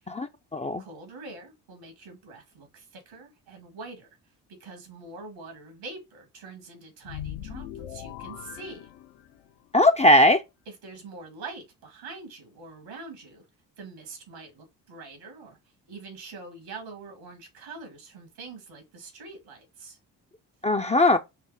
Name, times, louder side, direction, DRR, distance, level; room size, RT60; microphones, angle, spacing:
voice 1, 0.1-0.8 9.7-10.4 20.6-21.2, left 1 dB, 15° left, 0.4 m, -19 dB
voice 2, 0.8-4.1 4.6-8.8 10.7-13.5 13.8-15.6 15.9-20.0, right 3 dB, 75° right, 1.9 m, -44 dB
sound 1, 7.0-9.6, left 11 dB, 65° left, 0.7 m, -40 dB
5.6 x 2.0 x 3.3 m
hypercardioid pair, 50°, 44 cm